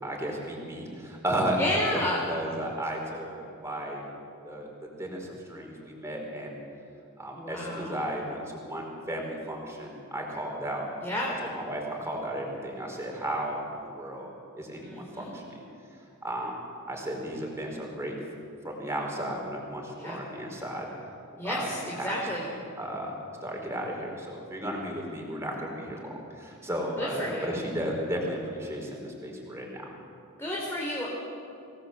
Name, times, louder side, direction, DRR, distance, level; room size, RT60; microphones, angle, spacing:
voice 1, 0.0-1.6 1.9-2.0 2.3-4.0 4.4-4.7 5.0-6.5 7.2-10.8 11.4-14.3 14.6-15.6 16.2-16.6 16.9-18.2 18.6-20.8 21.4-21.7 22.0-22.4 22.8-29.9, right 1 dB, 10° right, 0 dB, 4.7 m, -34 dB
voice 2, 1.5-2.3 7.3-8.1 11.0-11.3 14.8-15.4 20.0-20.2 21.4-22.5 27.0-27.6 30.4-31.1, left 1 dB, 10° left, -4 dB, 3.6 m, -32 dB
25.0 x 18.5 x 8.1 m, 2.5 s
head